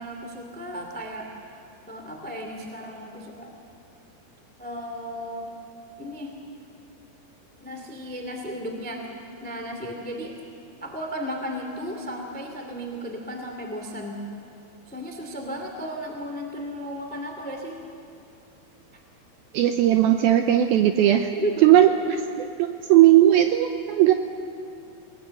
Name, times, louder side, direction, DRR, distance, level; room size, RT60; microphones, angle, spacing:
voice 1, 0.0-1.6 1.9-3.5 4.6-5.5 6.0-6.4 7.6-9.0 9.4-10.4 10.8-14.2 14.9-17.8 21.4-21.7, equal, 5° left, 3 dB, 1.0 m, -34 dB
voice 2, 19.5-21.3 21.6-24.1, right 12 dB, 85° right, 6 dB, 2.1 m, -18 dB
28.0 x 19.0 x 7.7 m, 2.5 s
omnidirectional pair, 5.1 m